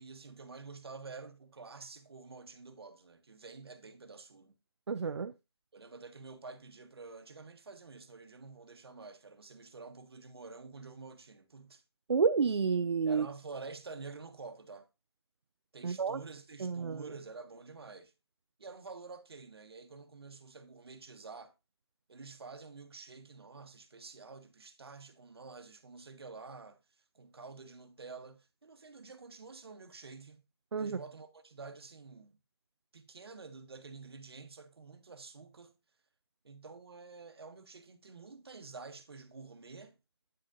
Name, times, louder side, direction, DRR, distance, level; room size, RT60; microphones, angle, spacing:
voice 1, 0.0-4.5 5.7-11.8 13.0-14.9 15.7-18.1 18.6-21.5 22.1-26.8 27.1-30.4 30.8-32.4 32.9-35.7 36.4-40.0, right 4 dB, 65° right, 1.2 m, -49 dB
voice 2, 4.9-5.3 12.1-13.3 15.8-16.2 16.6-17.0 30.7-31.0, right 5 dB, 85° right, 0.4 m, -30 dB
9.1 x 6.5 x 2.5 m
figure-of-eight pair, 165°, 14 cm